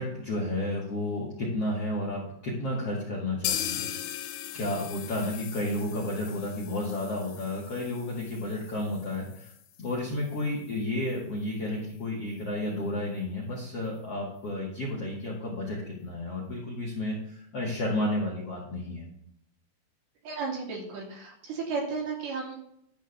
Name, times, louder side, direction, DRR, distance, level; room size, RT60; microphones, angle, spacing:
voice 1, 0.0-4.2 4.5-9.5 9.8-19.1, left 1 dB, 45° left, -4 dB, 2.2 m, -32 dB
sound 1, 3.4-11.2 11.5-11.6 11.9-12.0 12.4-12.5, left 11 dB, 85° left, 3.4 m, -39 dB
voice 2, 20.2-22.6, right 4 dB, 60° right, -2 dB, 4.3 m, -34 dB
12.5 x 4.5 x 7.1 m, 0.71 s
omnidirectional pair, 5.3 m